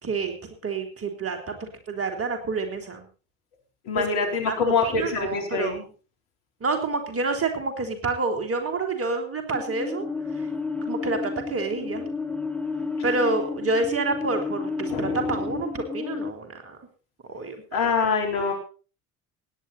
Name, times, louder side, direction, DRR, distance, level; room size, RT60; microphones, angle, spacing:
voice 1, 0.0-3.1 4.0-4.5 4.8-5.8 6.6-10.1 10.9-12.1 13.0-16.8 17.3-17.9, right 3 dB, 30° right, 5 dB, 3.6 m, -28 dB
voice 2, 3.8-5.9 14.9-15.5 17.7-18.5, left 5 dB, 60° left, 1 dB, 4.2 m, -25 dB
sound 1, 9.5-16.3, left 4 dB, 5° left, 1.1 m, -31 dB
17.0 x 10.0 x 4.2 m, 0.35 s
figure-of-eight pair, 60°, 44 cm